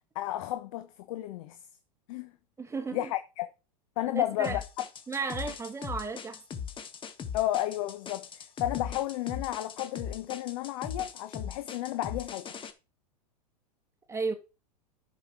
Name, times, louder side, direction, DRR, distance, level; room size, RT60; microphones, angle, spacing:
voice 1, 0.1-1.6 2.1-2.3 2.9-3.5 4.0-4.6 7.3-12.5, left 14 dB, 55° left, 1.1 m, -32 dB
voice 2, 2.6-3.1 4.1-4.6 5.1-6.4 14.1-14.3, right 4 dB, 15° right, 1.8 m, -34 dB
sound 1, 4.4-12.7, left 7 dB, 25° left, 1.6 m, -39 dB
10.5 x 6.7 x 4.9 m
hypercardioid pair, 105°, 20 cm